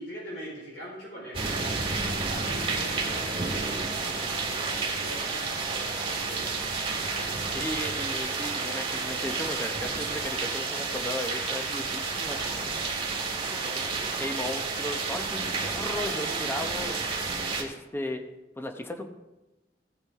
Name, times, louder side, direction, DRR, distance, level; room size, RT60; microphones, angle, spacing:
voice 1, 0.0-7.6 13.4-14.1, equal, 70° left, -4 dB, 4.1 m, -43 dB
sound 1, 1.3-17.6, right 4 dB, 30° right, 1.8 m, -30 dB
voice 2, 3.9-4.3 7.5-12.8 13.6-17.0 17.3-18.2 18.6-19.1, left 1 dB, 15° left, 5 dB, 0.9 m, -36 dB
15.5 x 8.7 x 3.7 m, 1.0 s
head